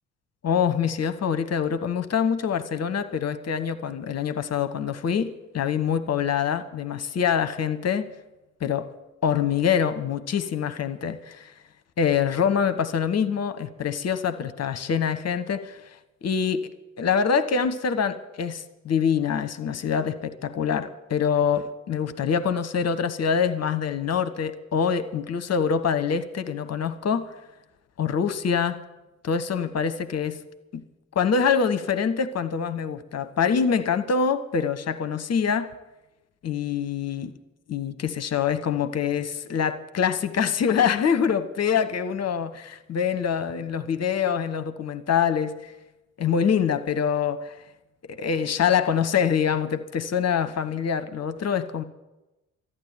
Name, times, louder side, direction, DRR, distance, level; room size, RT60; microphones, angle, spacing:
voice 1, 0.4-8.1 8.6-8.9 9.2-11.5 12.0-15.8 16.2-16.7 17.0-27.3 28.0-28.8 29.2-30.4 30.7-30.8 31.1-35.7 36.4-37.3 37.7-45.7 46.2-47.6 48.1-51.8, left 7 dB, 40° left, 1.1 m, -25 dB
13.5 x 10.0 x 8.9 m
figure-of-eight pair, 45°, 38 cm